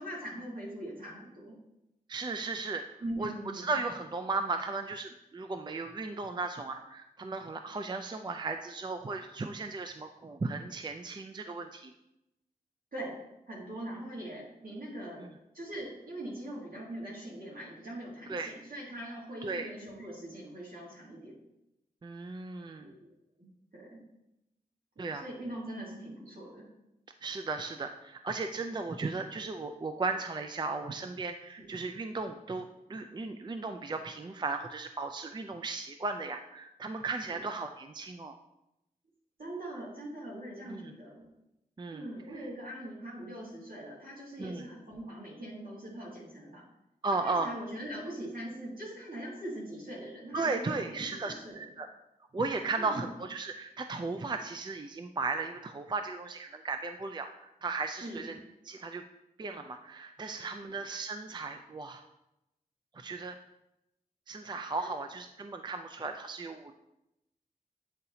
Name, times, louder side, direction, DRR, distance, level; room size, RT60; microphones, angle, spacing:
voice 1, 0.0-1.5 3.0-3.8 12.9-13.2 13.5-15.2 15.5-21.3 22.8-23.1 23.4-24.0 25.0-26.6 31.6-31.7 37.3-37.4 39.4-41.3 41.9-46.6 47.2-51.7 52.8-53.1 58.0-58.3 64.8-64.9, right 1 dB, 70° right, -5 dB, 2.4 m, -42 dB
voice 2, 2.1-2.8 3.2-11.9 15.2-15.3 18.3-18.5 19.4-19.7 22.0-22.9 25.0-25.2 27.2-38.3 40.7-40.9 41.8-42.1 42.3-42.4 44.4-44.6 47.0-47.5 50.3-51.9 52.3-58.4 58.6-59.0 59.4-62.0 62.9-63.4 64.3-66.7, right 3 dB, 30° right, 6 dB, 0.4 m, -36 dB
8.7 x 4.0 x 2.8 m, 0.89 s
cardioid pair, 45°, 16 cm